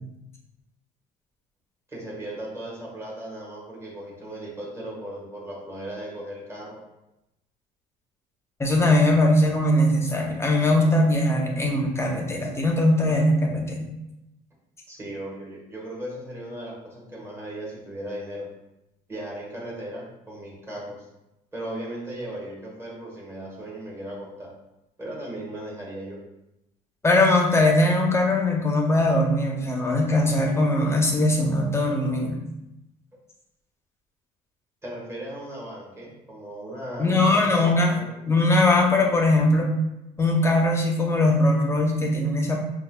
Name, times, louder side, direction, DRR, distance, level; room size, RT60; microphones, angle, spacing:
voice 1, 1.9-6.8 14.9-18.5 19.1-21.1 21.5-24.5 25.0-26.2 34.8-38.1, right 1 dB, 15° right, -5 dB, 1.3 m, -37 dB
voice 2, 8.6-13.9 27.0-32.4 37.0-38.0 38.3-39.7 40.2-42.6, left 1 dB, 15° left, 0 dB, 0.6 m, -21 dB
5.1 x 2.3 x 2.2 m, 0.92 s
cardioid pair, 110°, 17 cm